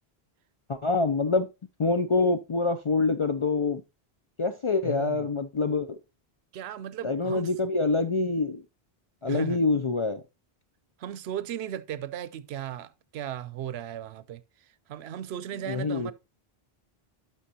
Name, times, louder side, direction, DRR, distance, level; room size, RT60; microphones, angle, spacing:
voice 1, 0.7-1.5 1.8-3.8 4.4-6.0 7.0-8.6 9.2-10.2 15.7-16.1, left 3 dB, 45° left, 0.4 m, -26 dB
voice 2, 4.8-5.3 6.5-7.5 9.3-9.6 11.0-16.1, right 10 dB, 85° right, 0.8 m, -36 dB
11.0 x 5.9 x 2.7 m
omnidirectional pair, 1.0 m